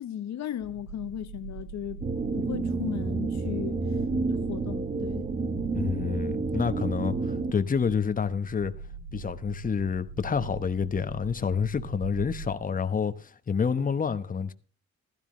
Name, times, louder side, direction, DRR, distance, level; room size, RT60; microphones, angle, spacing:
voice 1, 0.0-2.0 2.3-3.8 4.3-5.3, left 10 dB, 65° left, 1.0 m, -36 dB
sound 1, 0.6-12.5, right 4 dB, 55° right, 5.4 m, -42 dB
sound 2, 2.0-7.5, right 3 dB, 30° right, 1.2 m, -30 dB
voice 2, 5.7-8.7 9.1-14.5, left 6 dB, 30° left, 1.1 m, -28 dB
15.5 x 12.5 x 3.2 m
cardioid pair, 90°, 30 cm